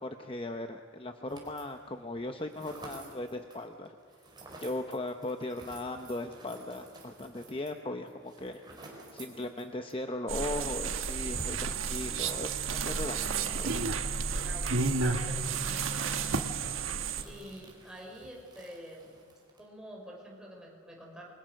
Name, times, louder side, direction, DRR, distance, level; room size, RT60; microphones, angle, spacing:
voice 1, 0.0-4.0 4.6-8.6 9.1-13.8, left 1 dB, 25° left, 6 dB, 0.8 m, -38 dB
sound 1, 1.3-1.9 2.2-10.0 10.3-10.4 10.7-19.7, right 2 dB, 20° right, 4.2 m, -52 dB
sound 2, 10.3-17.2, right 5 dB, 75° right, 1.3 m, -31 dB
voice 2, 13.3-13.9 14.2-16.3 17.2-19.1 19.6-21.2, equal, 5° right, -3 dB, 5.6 m, -48 dB
28.0 x 22.0 x 6.5 m, 2.3 s
head